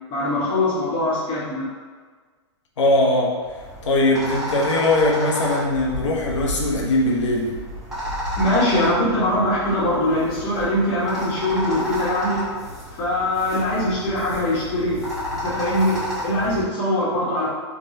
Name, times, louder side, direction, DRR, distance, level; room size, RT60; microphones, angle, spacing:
voice 1, 0.1-1.7 8.4-12.4 12.9-15.0 15.4-17.5, left 1 dB, 35° left, -6 dB, 1.0 m, -22 dB
voice 2, 2.8-3.4 3.8-7.6, left 2 dB, 80° left, -1 dB, 0.7 m, -20 dB
sound 1, 3.4-16.6, equal, 5° right, 1.0 m, -32 dB
3.4 x 2.2 x 2.7 m, 1.5 s
hypercardioid pair, 130°, 15 cm